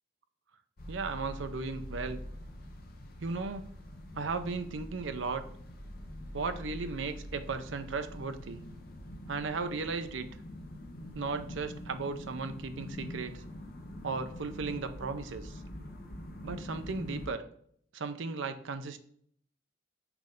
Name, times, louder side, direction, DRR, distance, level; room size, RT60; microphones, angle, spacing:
sound 1, 0.8-17.3, left 1 dB, 45° left, 0.8 m, -45 dB
voice 1, 0.9-2.2 3.2-3.7 4.2-5.4 6.3-8.6 9.3-10.3 11.1-13.4 14.0-15.6 16.4-17.4 17.9-19.0, right 4 dB, 65° right, 9 dB, 0.6 m, -36 dB
6.0 x 3.2 x 5.1 m, 0.63 s
head